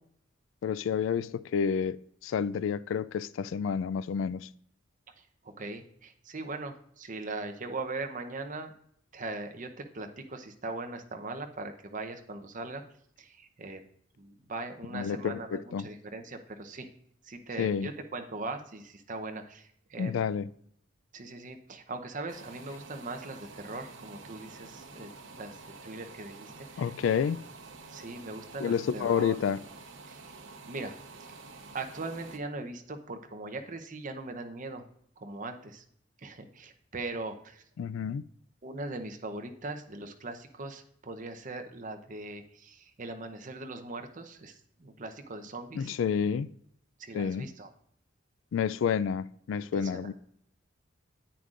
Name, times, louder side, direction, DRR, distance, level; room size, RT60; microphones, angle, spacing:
voice 1, 0.6-4.5 14.9-15.8 17.6-17.9 20.0-20.5 26.8-27.4 28.6-29.6 37.8-38.2 45.8-46.5 47.1-47.5 48.5-50.1, left 7 dB, 80° left, 0.3 m, -29 dB
voice 2, 5.2-8.7 9.1-12.8 13.2-13.8 14.2-16.9 17.2-20.1 21.1-26.9 27.9-29.4 30.1-30.3 30.7-30.9 31.2-31.4 31.7-34.8 35.2-35.8 36.2-37.6 38.6-46.0 47.0-47.7 49.7-50.1, right 2 dB, 45° right, 0.8 m, -40 dB
sound 1, 22.3-32.4, right 3 dB, 85° right, 0.9 m, -49 dB
10.0 x 9.0 x 2.5 m
head